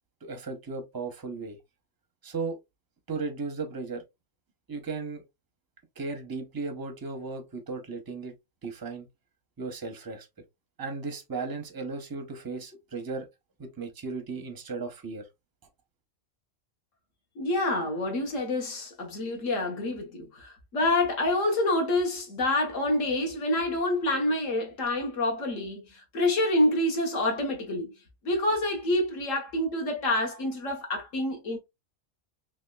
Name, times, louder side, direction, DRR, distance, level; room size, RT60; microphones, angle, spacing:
voice 1, 0.2-1.6 2.2-2.6 3.1-4.0 4.7-5.2 6.0-8.3 8.6-9.1 9.6-10.3 10.8-13.3 13.6-15.3, right 4 dB, 25° right, 0.5 m, -35 dB
voice 2, 17.4-25.8 26.1-27.9 28.2-31.6, left 1 dB, 70° left, 1.4 m, -27 dB
3.5 x 3.1 x 2.3 m
omnidirectional pair, 1.4 m